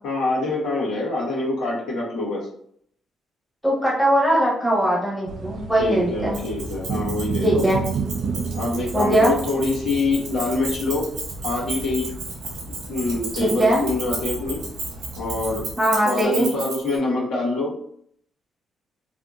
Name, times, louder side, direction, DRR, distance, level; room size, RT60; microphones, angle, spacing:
voice 1, 0.0-2.5 5.7-7.6 8.5-11.1 11.4-12.1 12.9-14.6 15.2-15.7 16.0-17.7, left 2 dB, 80° left, -5 dB, 1.0 m, -25 dB
voice 2, 3.6-6.4 7.4-7.8 8.9-9.3 13.3-13.8 15.8-16.5, right 1 dB, ahead, -5 dB, 1.1 m, -20 dB
sound 1, 5.3-15.7, right 4 dB, 60° right, 0.4 m, -32 dB
Keys jangling, 6.3-17.0, right 3 dB, 80° right, 1.0 m, -34 dB
2.7 x 2.5 x 2.3 m, 0.67 s
cardioid pair, 90°, 0 cm